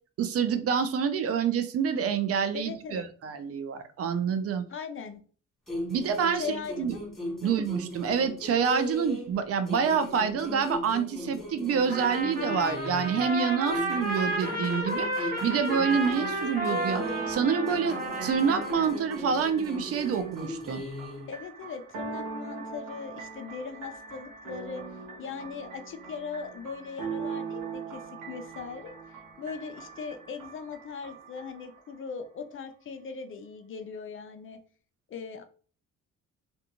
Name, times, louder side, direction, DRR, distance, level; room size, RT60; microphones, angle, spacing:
voice 1, 0.2-4.6 5.9-6.4 6.8-7.0 7.4-20.8, right 6 dB, 50° right, 11 dB, 0.4 m, -27 dB
voice 2, 2.5-3.1 4.7-5.2 6.3-7.0 7.4-7.5 21.3-24.8 25.2-34.6 35.1-35.4, left 5 dB, 45° left, 8 dB, 0.4 m, -39 dB
sound 1, 5.7-9.4 9.7-13.3 13.7-17.4 17.7-21.3, equal, ahead, 1.0 m, -38 dB
Trumpet, 11.9-19.0, right 1 dB, 30° right, 1.0 m, -32 dB
sound 2, 15.9-32.0, right 5 dB, 90° right, 0.8 m, -41 dB
2.5 x 2.2 x 2.8 m, 0.42 s
cardioid pair, 90°, 30 cm